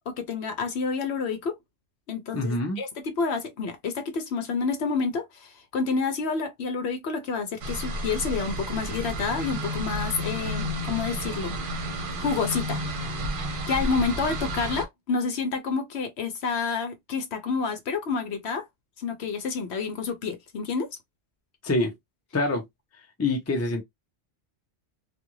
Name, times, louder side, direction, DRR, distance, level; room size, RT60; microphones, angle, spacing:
voice 1, 0.0-1.6 2.1-11.6 12.2-12.8 13.7-18.7 19.0-20.9, left 5 dB, 70° left, 0.8 m, -29 dB
voice 2, 2.3-2.8 21.6-21.9 22.3-22.7 23.2-23.8, left 2 dB, 20° left, 0.5 m, -25 dB
sound 1, 7.6-14.8, equal, 55° right, 0.8 m, -31 dB
2.4 x 2.2 x 3.0 m
omnidirectional pair, 1.2 m